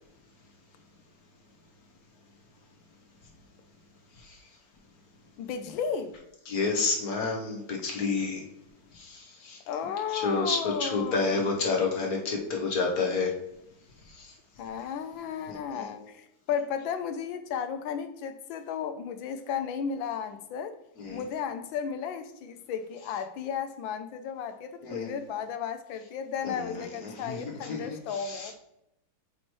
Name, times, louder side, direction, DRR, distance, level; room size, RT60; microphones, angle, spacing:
voice 1, 5.4-6.1 9.7-11.6 14.6-20.7 21.1-28.5, left 7 dB, 75° left, 9 dB, 1.2 m, -34 dB
voice 2, 6.5-8.4 8.9-9.6 10.1-13.3 14.1-14.3 15.5-15.9 21.0-21.2 24.8-25.1 26.4-28.5, left 4 dB, 55° left, 0 dB, 1.1 m, -30 dB
7.4 x 3.0 x 4.4 m, 0.84 s
omnidirectional pair, 2.4 m